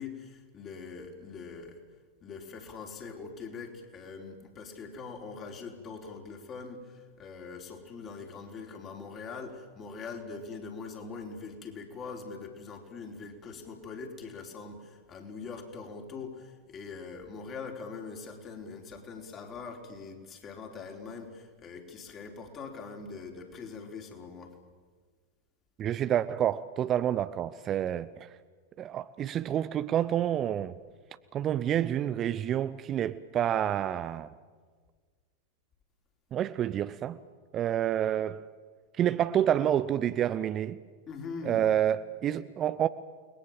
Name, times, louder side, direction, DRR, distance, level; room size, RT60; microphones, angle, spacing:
voice 1, 0.0-1.8 2.2-24.5 41.1-41.7, left 4 dB, 30° left, 4.2 m, -42 dB
voice 2, 25.8-28.3 28.8-30.7 31.3-34.3 36.3-37.2 37.5-38.4 39.0-40.8 41.4-42.9, right 10 dB, 30° right, 0.7 m, -28 dB
29.5 x 21.0 x 7.5 m
figure-of-eight pair, 90°, 0 cm